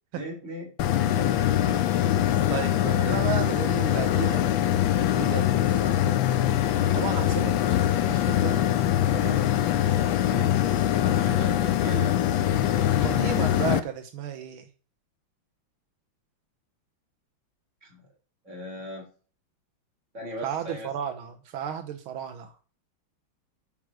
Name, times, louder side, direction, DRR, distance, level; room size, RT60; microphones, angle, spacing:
voice 1, 0.1-0.7 1.1-1.5 10.0-10.6 11.0-12.2 17.8-18.0 18.4-19.1 20.1-20.9, equal, 35° right, -1 dB, 4.0 m, -38 dB
sound 1, 0.8-13.8, left 12 dB, 75° left, 1.4 m, -23 dB
voice 2, 2.5-6.2 6.9-8.8 9.1-9.4 13.0-14.7 20.4-22.5, right 9 dB, 80° right, 6 dB, 1.7 m, -34 dB
9.4 x 4.8 x 6.2 m, 0.39 s
omnidirectional pair, 2.3 m